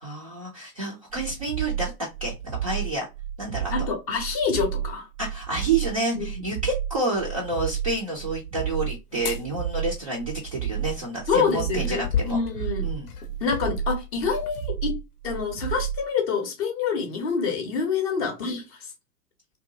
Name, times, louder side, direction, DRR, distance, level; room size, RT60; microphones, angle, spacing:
voice 1, 0.0-2.3 2.6-3.1 3.4-3.7 5.2-12.4 12.8-13.1, right 2 dB, 25° right, 0.4 m, -29 dB
sound 1, 1.1-16.1, right 10 dB, 80° right, 0.6 m, -32 dB
voice 2, 3.7-5.1 6.1-6.4 11.3-12.8 13.4-15.0 15.2-18.9, left 5 dB, 25° left, 0.6 m, -27 dB
sound 2, 9.1-9.4 11.2-14.7 15.3-15.5, left 7 dB, 70° left, 0.6 m, -33 dB
2.7 x 2.1 x 2.6 m
figure-of-eight pair, 105°, 47 cm